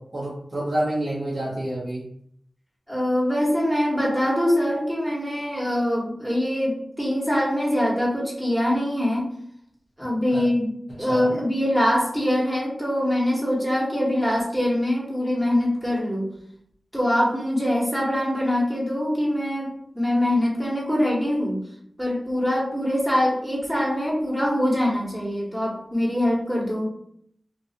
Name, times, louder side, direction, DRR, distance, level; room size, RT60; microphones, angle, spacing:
voice 1, 0.0-2.0 10.3-10.4 11.1-11.3, right 1 dB, 65° right, -7 dB, 0.8 m, -28 dB
voice 2, 2.9-9.3 10.0-16.3 16.9-21.6 22.0-26.9, left 1 dB, 10° right, -4 dB, 1.0 m, -23 dB
2.3 x 2.3 x 2.7 m, 0.68 s
cardioid pair, 40°, 0 cm